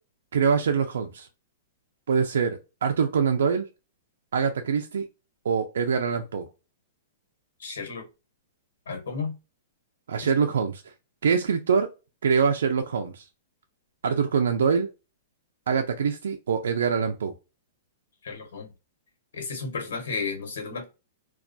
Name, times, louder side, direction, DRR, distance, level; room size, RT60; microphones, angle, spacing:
voice 1, 0.3-1.3 2.1-3.7 4.3-5.0 5.4-6.5 10.1-10.8 11.2-11.9 12.2-13.2 14.0-14.9 15.7-17.3, right 6 dB, 90° right, 0.4 m, -24 dB
voice 2, 7.6-8.1 8.9-9.3 10.2-10.3 18.2-18.7 19.3-20.8, left 4 dB, 85° left, 1.1 m, -33 dB
2.3 x 2.1 x 2.5 m
hypercardioid pair, 155°, 0 cm